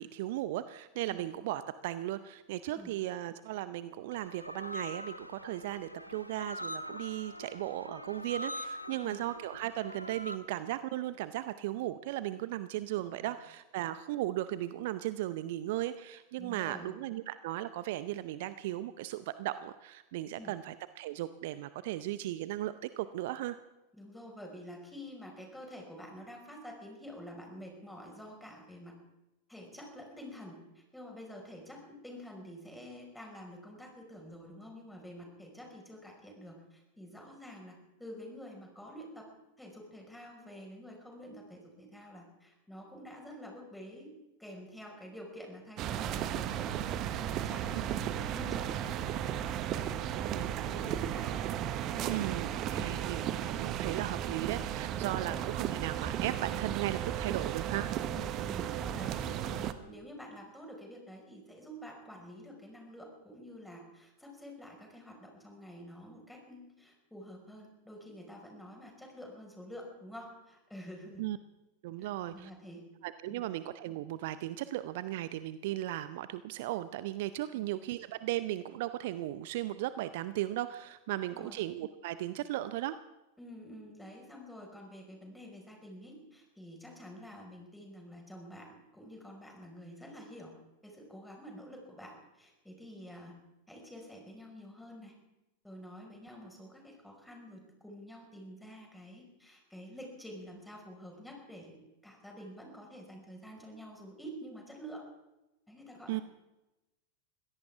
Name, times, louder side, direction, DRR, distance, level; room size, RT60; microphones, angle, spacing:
voice 1, 0.0-23.6 47.8-48.0 50.1-50.5 52.1-57.9 71.2-71.4 71.8-72.5 73.0-83.0 106.1-106.2, right 14 dB, 50° right, 14 dB, 0.6 m, -36 dB
sound 1, 4.1-10.4, left 1 dB, 90° left, 0.8 m, -43 dB
voice 2, 16.4-16.9 20.4-20.6 23.9-29.0 29.5-39.3 39.6-44.1 44.4-49.0 49.3-51.3 51.8-52.2 52.7-52.9 55.2-55.5 58.1-71.3 72.0-72.8 73.3-73.4 77.5-77.6 81.3-81.6 83.4-88.7 88.9-90.5 90.8-93.4 93.7-95.1 95.6-105.0 105.7-106.2, equal, 5° left, 1 dB, 5.3 m, -48 dB
sound 2, 45.8-59.7, right 10 dB, 35° right, 1.1 m, -35 dB
23.0 x 16.5 x 3.6 m, 0.97 s
figure-of-eight pair, 90°, 0 cm